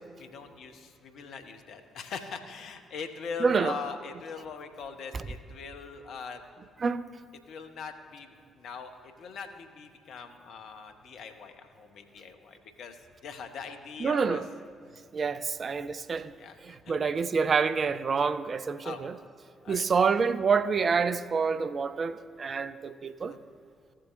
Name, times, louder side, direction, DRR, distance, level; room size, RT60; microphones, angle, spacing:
voice 1, 0.2-6.4 7.5-14.4 14.9-15.0 16.4-17.1 18.8-19.0 19.6-20.1 23.2-23.4, left 5 dB, 60° left, 0.8 m, -42 dB
voice 2, 3.4-3.7 5.1-5.2 6.8-7.1 14.0-14.5 15.1-16.3 16.6-19.2 19.7-23.4, right 5 dB, 40° right, 0.4 m, -27 dB
15.0 x 7.4 x 2.6 m
figure-of-eight pair, 40°, 0 cm